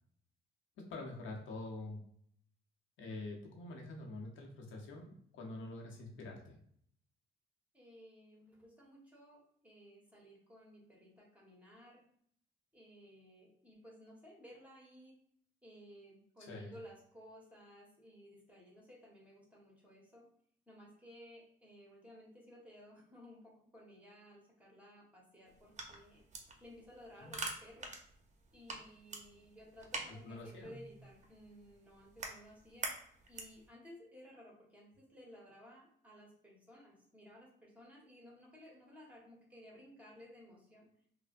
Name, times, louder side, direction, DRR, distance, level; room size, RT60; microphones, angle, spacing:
voice 1, 0.8-2.0 3.0-6.6 16.4-16.8 27.2-27.3 30.1-30.8, left 2 dB, 80° left, 0 dB, 0.7 m, -46 dB
voice 2, 7.7-12.0 12.7-15.1 15.6-20.3 20.7-26.2 26.6-27.9 28.5-33.0 33.3-40.9, equal, 5° right, -3 dB, 1.2 m, -57 dB
sound 1, 25.5-33.7, right 3 dB, 35° right, 0.6 m, -47 dB
3.2 x 2.0 x 2.5 m, 0.64 s
cardioid pair, 90°, 20 cm